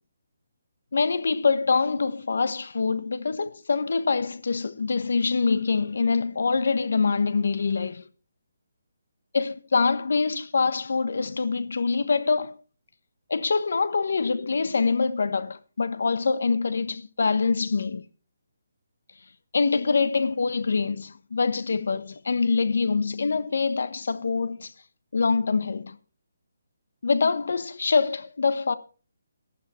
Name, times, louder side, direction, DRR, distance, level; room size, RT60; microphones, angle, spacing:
voice 1, 0.9-8.0 9.3-12.5 13.3-18.0 19.5-24.7 25.1-26.0 27.0-28.7, left 4 dB, 60° left, 1.1 m, -24 dB
13.0 x 11.5 x 4.4 m
hypercardioid pair, 180°, 0 cm